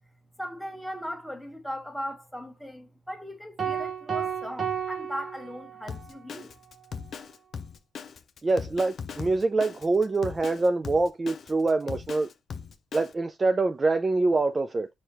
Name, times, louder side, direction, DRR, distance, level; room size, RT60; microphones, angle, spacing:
voice 1, 0.4-6.5, equal, 5° left, 1.3 m, -38 dB
sound 1, 3.6-6.1, right 7 dB, 45° right, 0.9 m, -32 dB
Drum kit, 5.9-13.1, left 6 dB, 55° left, 0.6 m, -39 dB
voice 2, 8.4-12.3 12.9-14.9, right 3 dB, 25° right, 0.4 m, -25 dB
4.7 x 2.9 x 3.0 m
cardioid pair, 90°, 0 cm